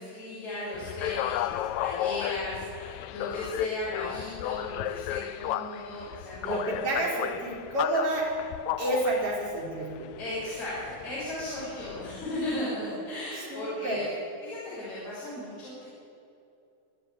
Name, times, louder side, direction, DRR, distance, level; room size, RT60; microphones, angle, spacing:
voice 1, 0.0-7.0 10.2-14.1 14.4-15.9, left 1 dB, 55° left, -9 dB, 7.9 m, -36 dB
sound 1, 0.7-12.6, left 13 dB, 85° left, 1.6 m, -34 dB
voice 2, 6.4-8.3 8.8-10.1 13.4-14.0, right 2 dB, 40° right, -2 dB, 5.1 m, -29 dB
26.5 x 12.0 x 9.9 m, 2.6 s
omnidirectional pair, 4.0 m